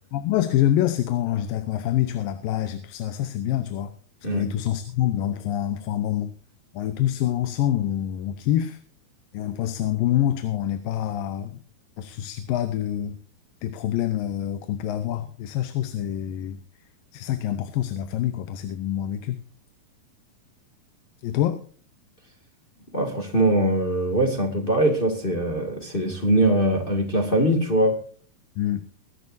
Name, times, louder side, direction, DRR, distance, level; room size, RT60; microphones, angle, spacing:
voice 1, 0.1-3.9 4.3-6.3 6.7-8.8 9.3-11.6 12.0-13.2 13.6-16.6 17.1-19.4 21.2-21.6 28.6-28.9, left 12 dB, 85° left, 10 dB, 2.6 m, -26 dB
voice 2, 22.9-28.0, right 1 dB, 20° left, 2 dB, 1.6 m, -22 dB
22.5 x 10.5 x 2.7 m, 0.41 s
omnidirectional pair, 4.0 m